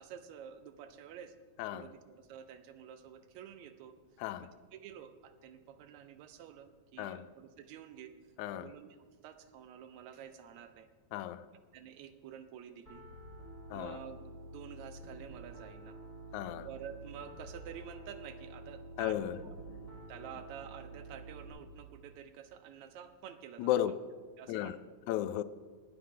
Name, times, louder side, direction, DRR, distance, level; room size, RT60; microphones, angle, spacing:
voice 1, 0.0-1.4 1.7-4.0 4.4-8.1 8.5-10.9 11.7-13.1 13.7-16.0 16.6-19.5 20.1-23.9 24.4-24.8, right 9 dB, 80° right, 1.9 m, -50 dB
voice 2, 4.2-4.5 7.0-7.3 8.4-8.7 11.1-11.5 13.7-14.0 16.3-16.7 19.0-19.4 23.6-23.9 24.5-24.8 25.1-25.4, left 12 dB, 90° left, 2.0 m, -34 dB
Piano, 12.9-21.5, right 2 dB, 20° right, 4.9 m, -49 dB
19.5 x 9.2 x 3.7 m
omnidirectional pair, 3.3 m